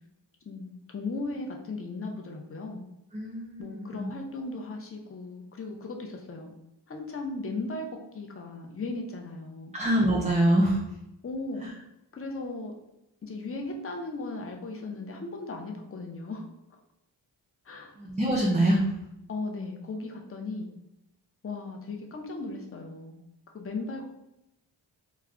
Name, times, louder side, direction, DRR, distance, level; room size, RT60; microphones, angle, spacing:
voice 1, 0.5-2.8 3.6-6.5 6.9-9.8 11.2-11.6 12.1-12.8 13.2-16.5 17.6-17.9 19.3-20.7 21.4-23.2 23.5-24.1, left 3 dB, 30° left, 2 dB, 0.6 m, -37 dB
voice 2, 3.1-4.1 9.7-10.8 11.6-11.7 18.0-18.8, right 1 dB, 15° right, -2 dB, 0.4 m, -25 dB
2.2 x 2.2 x 3.6 m, 0.86 s
cardioid pair, 50°, 46 cm